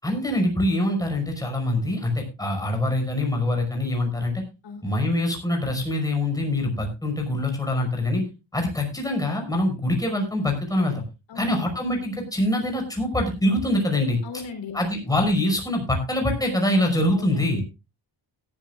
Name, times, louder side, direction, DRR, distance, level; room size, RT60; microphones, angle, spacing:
voice 1, 0.0-4.4 4.8-8.2 8.5-11.0 11.4-14.2 14.7-17.6, left 1 dB, 10° left, 2 dB, 5.5 m, -24 dB
voice 2, 11.3-11.7 14.2-14.9 17.1-17.6, left 5 dB, 75° left, 5 dB, 4.0 m, -37 dB
17.5 x 12.5 x 2.5 m, 0.28 s
wide cardioid pair, 130°, 44 cm